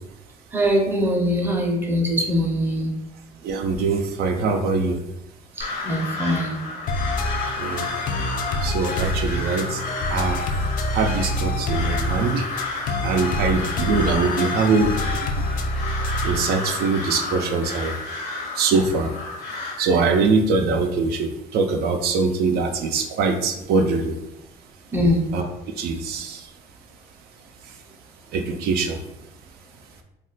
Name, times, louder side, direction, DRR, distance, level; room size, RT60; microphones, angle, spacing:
voice 1, 0.5-2.9 5.6-6.6 24.9-25.2, equal, 10° right, 0 dB, 0.6 m, -22 dB
voice 2, 3.4-5.0 7.6-7.9 8.6-9.8 10.1-10.4 10.9-15.5 16.2-18.0 18.5-24.2 25.3-25.5 25.7-26.5 27.6-27.8 28.3-29.0, right 4 dB, 70° right, 5 dB, 0.4 m, -23 dB
Crow, 5.6-19.8, left 3 dB, 75° left, 0.9 m, -31 dB
sound 1, 6.9-16.5, left 1 dB, 50° left, 0.4 m, -27 dB
2.3 x 2.1 x 3.8 m, 0.90 s
cardioid pair, 110°, 17 cm